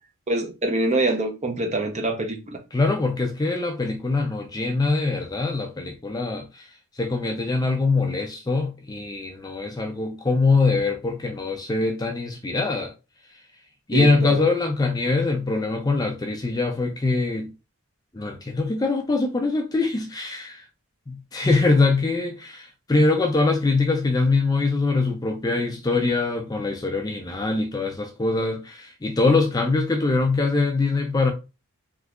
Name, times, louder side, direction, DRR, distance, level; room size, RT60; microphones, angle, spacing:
voice 1, 0.3-2.6 13.9-14.5, right 2 dB, 30° right, 0.6 m, -25 dB
voice 2, 2.7-6.7 7.0-12.9 13.9-17.5 18.1-20.6 21.1-31.3, left 3 dB, 15° left, 0.4 m, -23 dB
3.6 x 2.7 x 2.3 m
head